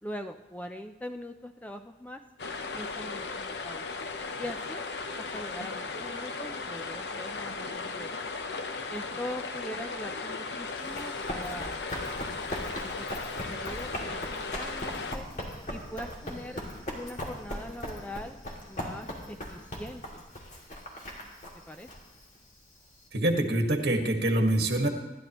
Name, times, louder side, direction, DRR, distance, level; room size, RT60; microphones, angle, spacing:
voice 1, 0.0-2.2 2.7-3.8 4.4-4.8 5.2-8.1 8.9-11.8 12.8-13.1 13.5-14.2 14.5-15.3 15.7-16.6 16.9-18.4 18.7-20.0 21.7-21.9, equal, 10° left, 6 dB, 0.5 m, -41 dB
sound 1, 2.4-15.2, left 4 dB, 75° left, 0.9 m, -36 dB
Run, 10.8-23.0, equal, 45° left, 2.6 m, -39 dB
voice 2, 23.1-24.9, right 1 dB, 70° right, 3 dB, 1.8 m, -25 dB
28.0 x 11.5 x 3.1 m, 1.0 s
head